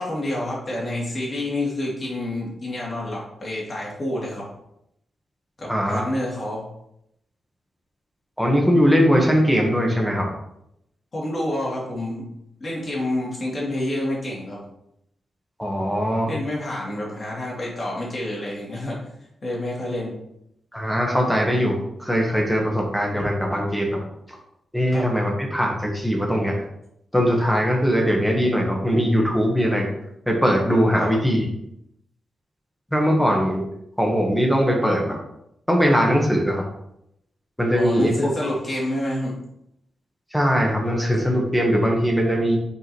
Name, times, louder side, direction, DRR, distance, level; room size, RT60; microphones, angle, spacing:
voice 1, 0.0-4.4 5.6-6.6 11.1-12.2 12.6-14.6 16.3-19.0 19.4-20.1 24.9-25.1 31.0-31.1 37.7-39.3, left 1 dB, 35° left, -4 dB, 2.6 m, -28 dB
voice 2, 5.7-6.1 8.4-10.3 15.6-16.3 20.7-24.0 24.3-24.4 24.7-26.6 27.1-29.9 30.3-31.4 32.9-33.6 34.0-35.2 35.7-36.6 37.6-38.3 40.3-42.6, equal, 5° left, 0 dB, 1.3 m, -20 dB
5.4 x 4.8 x 4.6 m, 0.78 s
wide cardioid pair, 125°, 0 cm